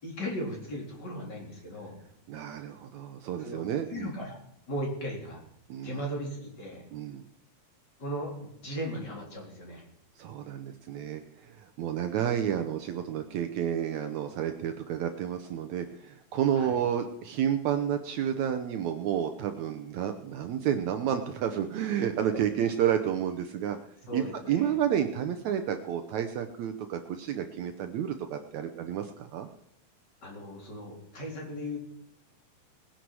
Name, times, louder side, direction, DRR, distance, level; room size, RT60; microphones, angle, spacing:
voice 1, 0.0-2.0 3.4-3.6 3.9-4.4 4.7-5.4 5.8-6.8 8.0-9.8 16.6-16.8 24.1-24.7 30.2-31.8, equal, 30° left, -1 dB, 3.8 m, -37 dB
voice 2, 2.3-4.1 5.7-6.0 6.9-7.3 10.2-23.8 24.1-29.5, right 9 dB, 80° right, 7 dB, 1.6 m, -30 dB
20.0 x 10.0 x 4.8 m, 0.77 s
omnidirectional pair, 4.2 m